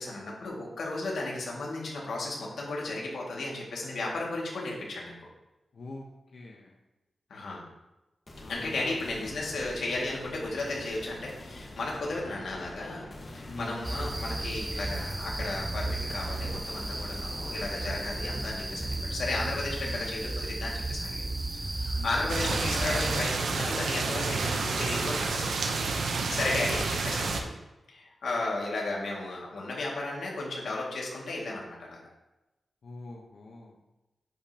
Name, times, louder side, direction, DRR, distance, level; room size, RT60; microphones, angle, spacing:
voice 1, 0.0-5.1 7.3-7.6 8.5-21.2 21.5-27.5 27.9-32.0, left 2 dB, 80° left, -3 dB, 2.1 m, -34 dB
voice 2, 5.7-6.0 6.3-6.7 8.4-9.0 13.4-13.8 19.8-20.1 21.9-22.1 32.8-33.7, left 2 dB, 60° left, -1 dB, 1.0 m, -43 dB
sound 1, 8.3-22.2, left 1 dB, 35° left, 1.4 m, -47 dB
sound 2, 13.8-23.2, right 2 dB, 15° right, 0.5 m, -34 dB
sound 3, 22.3-27.4, right 4 dB, 85° right, 0.8 m, -30 dB
10.5 x 5.2 x 2.9 m, 1.0 s
wide cardioid pair, 100°, 0 cm